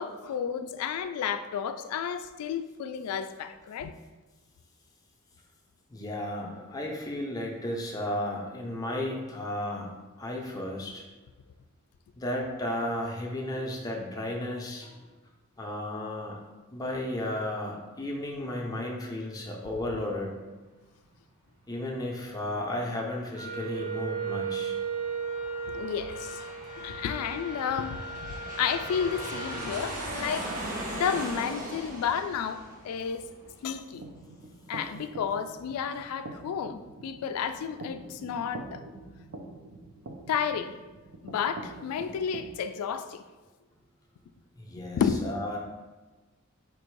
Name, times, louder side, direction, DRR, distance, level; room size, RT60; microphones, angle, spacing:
voice 1, 0.0-3.9 25.7-26.4 26.8-28.0 28.6-30.5 30.9-33.2 33.6-34.0 34.7-38.8 40.3-40.7 41.2-43.2 44.9-45.3, left 7 dB, 85° left, 13 dB, 0.3 m, -31 dB
voice 2, 5.9-11.0 12.2-14.9 15.6-16.4 16.7-20.3 21.7-24.7 44.6-45.6, left 1 dB, 15° left, -1 dB, 0.5 m, -34 dB
Aircraft, 23.0-34.1, right 1 dB, 35° right, 0.8 m, -40 dB
Wind instrument woodwind instrument, 23.3-29.8, right 5 dB, 80° right, 1.0 m, -36 dB
sound 1, 33.9-42.5, right 2 dB, 55° right, 0.4 m, -45 dB
4.5 x 2.5 x 4.5 m, 1.2 s
head